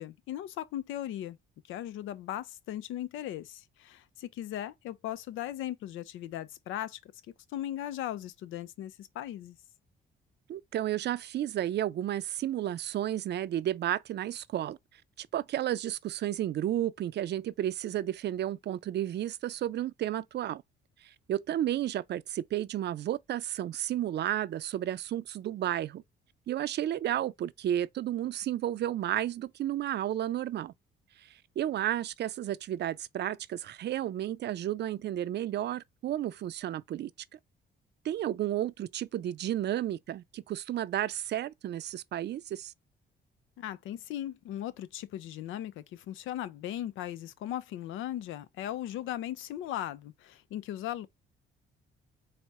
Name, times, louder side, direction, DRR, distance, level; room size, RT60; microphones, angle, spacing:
voice 1, 0.0-1.4 1.7-7.1 7.5-9.6 43.6-51.1, left 12 dB, 85° left, 0.5 m, -38 dB
voice 2, 10.5-14.8 15.2-20.6 21.0-26.0 26.5-30.7 31.6-37.1 38.0-42.7, right 12 dB, 60° right, 0.5 m, -32 dB
4.2 x 2.1 x 4.6 m
cardioid pair, 90°, 20 cm